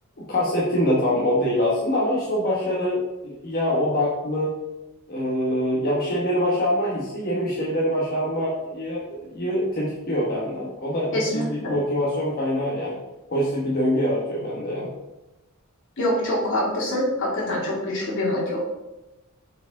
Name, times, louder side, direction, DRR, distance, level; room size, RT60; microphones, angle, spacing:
voice 1, 0.2-4.5 5.1-13.0 13.3-14.9, equal, 45° left, -5 dB, 1.2 m, -24 dB
voice 2, 11.1-11.7 16.0-18.6, left 1 dB, 60° left, -5 dB, 2.5 m, -25 dB
7.6 x 4.5 x 3.6 m, 1.0 s
head